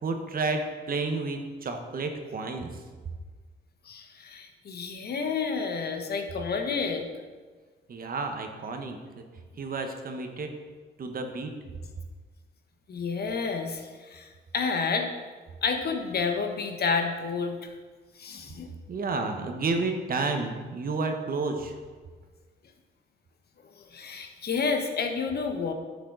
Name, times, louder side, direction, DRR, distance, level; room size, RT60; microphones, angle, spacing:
voice 1, 0.0-2.7 7.9-9.3 9.6-10.5 11.0-11.6 18.9-21.7, right 3 dB, 45° right, 5 dB, 1.3 m, -31 dB
voice 2, 3.9-7.0 12.9-13.8 14.1-14.2 14.5-15.1 15.6-17.6 18.2-18.7 23.9-25.7, left 5 dB, 55° left, 5 dB, 1.2 m, -29 dB
10.5 x 7.3 x 4.0 m, 1.4 s
cardioid pair, 90°, 20 cm